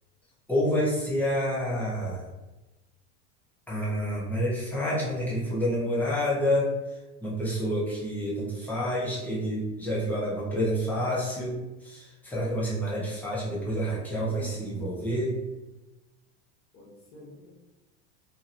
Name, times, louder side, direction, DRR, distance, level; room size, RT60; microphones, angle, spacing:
voice 1, 0.5-2.2 3.7-6.7 7.2-15.4, equal, 5° left, -7 dB, 0.7 m, -28 dB
voice 2, 14.1-14.9 16.7-17.5, left 1 dB, 85° left, -5 dB, 1.1 m, -47 dB
2.8 x 2.7 x 2.5 m, 1.1 s
supercardioid pair, 155°, 32 cm